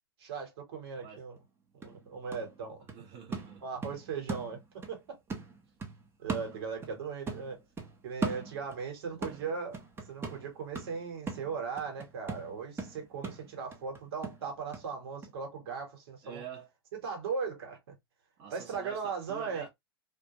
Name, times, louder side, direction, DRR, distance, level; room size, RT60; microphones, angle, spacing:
voice 1, 0.2-1.4 1.8-2.8 3.6-5.2 6.2-7.6 8.0-9.8 10.1-16.4 16.9-17.9 18.5-19.7, right 5 dB, 70° right, 1.3 m, -38 dB
sound 1, 1.4-1.5 1.8-5.0 5.3-7.0 7.3-8.9 9.2-14.9 15.2-15.3, right 4 dB, 15° right, 0.7 m, -40 dB
voice 2, 2.9-4.0 9.0-9.4 16.2-16.7 18.4-19.7, right 7 dB, 45° right, 0.9 m, -48 dB
2.3 x 2.2 x 2.8 m
hypercardioid pair, 110°, 13 cm